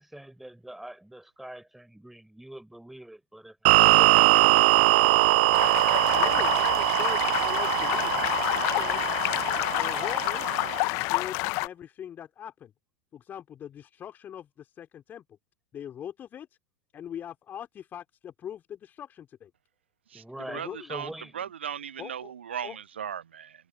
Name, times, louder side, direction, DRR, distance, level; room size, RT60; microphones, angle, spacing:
voice 1, 0.0-5.5 20.1-21.4, right 1 dB, 5° right, 5.6 m, -44 dB
sound 1, 3.7-10.8, right 18 dB, 60° right, 0.3 m, -22 dB
sound 2, 5.5-11.7, left 28 dB, 50° left, 1.1 m, -28 dB
voice 2, 6.1-9.0 9.8-10.6 11.0-12.7 13.1-15.4 15.7-16.5 16.9-19.5 20.5-21.0 22.0-22.3 22.6-22.8, left 9 dB, 30° left, 4.3 m, -41 dB
voice 3, 20.5-23.7, right 8 dB, 75° right, 0.8 m, -37 dB
figure-of-eight pair, 85°, 6 cm